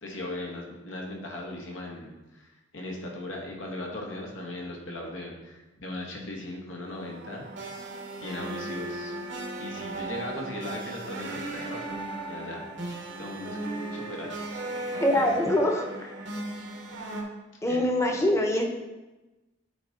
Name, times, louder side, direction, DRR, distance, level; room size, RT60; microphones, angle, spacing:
voice 1, 0.0-7.7 8.2-9.2 9.6-12.0 12.3-13.6 13.9-14.3 15.1-15.3 17.7-17.9, left 1 dB, 90° left, 0 dB, 1.4 m, -38 dB
sound 1, 6.8-17.2, right 2 dB, 70° right, 1.1 m, -36 dB
voice 2, 15.0-16.1 17.6-18.6, left 1 dB, 15° left, 2 dB, 0.8 m, -24 dB
8.8 x 4.1 x 3.8 m, 1.1 s
head